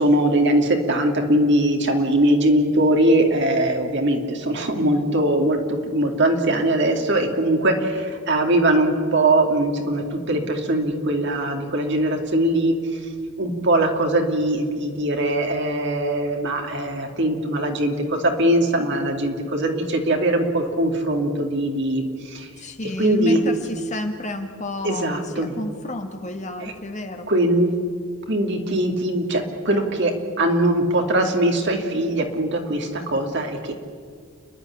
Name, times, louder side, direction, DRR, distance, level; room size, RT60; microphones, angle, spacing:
voice 1, 0.0-12.7 13.4-22.5 23.0-23.6 24.8-25.5 26.6-26.7 27.3-27.7 28.3-33.7, right 1 dB, 55° right, 3 dB, 2.6 m, -21 dB
voice 2, 22.6-27.3, left 1 dB, 35° left, 6 dB, 1.6 m, -30 dB
29.5 x 11.0 x 9.9 m, 2.1 s
head